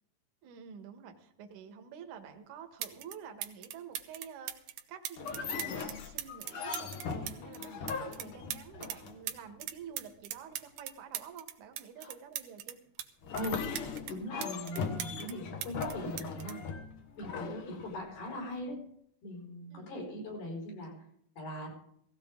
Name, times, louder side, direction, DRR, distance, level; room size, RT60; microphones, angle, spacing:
voice 1, 0.4-12.8 19.7-19.9, right 7 dB, 60° right, 6 dB, 2.5 m, -49 dB
sound 1, 2.3-2.4 2.8-3.2 3.4-9.0 9.3-13.1 13.4-15.3 15.6-17.4 18.4-18.6, right 12 dB, 90° right, 3.0 m, -41 dB
sound 2, 5.2-9.5 13.2-18.3, left 5 dB, 65° left, 1.4 m, -39 dB
voice 2, 13.3-13.7 14.1-16.6 17.2-18.8 19.2-20.9 21.4-21.7, equal, 80° left, -1 dB, 7.2 m, -40 dB
17.5 x 16.5 x 3.7 m, 0.71 s
omnidirectional pair, 4.3 m